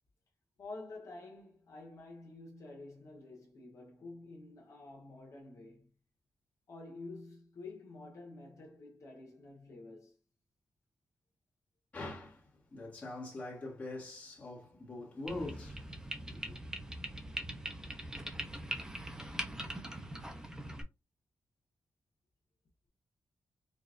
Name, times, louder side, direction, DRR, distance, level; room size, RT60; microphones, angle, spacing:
voice 1, 0.6-5.9 6.7-10.2, left 2 dB, 55° left, 1.3 m, -49 dB
voice 2, 11.9-15.9 16.3-16.6, left 2 dB, 20° left, 1.6 m, -43 dB
sound 1, 15.3-20.8, right 1 dB, 10° right, 0.6 m, -42 dB
5.0 x 2.6 x 2.5 m
wide cardioid pair, 180°, 6 cm